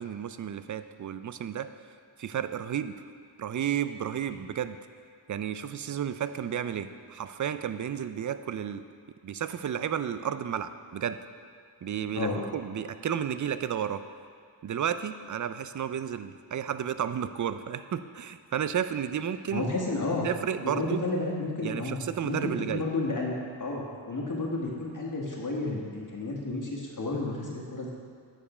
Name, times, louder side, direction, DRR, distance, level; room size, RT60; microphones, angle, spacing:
voice 1, 0.0-1.7 2.2-3.0 3.4-4.8 5.3-8.8 9.2-11.2 11.8-14.0 14.6-19.7 20.2-21.0 21.6-22.8, right 9 dB, 40° right, 11 dB, 0.4 m, -32 dB
voice 2, 12.1-12.5 19.5-20.3 20.6-27.9, left 2 dB, 40° left, -3 dB, 1.7 m, -32 dB
9.1 x 4.8 x 5.0 m, 2.2 s
cardioid pair, 50°, 47 cm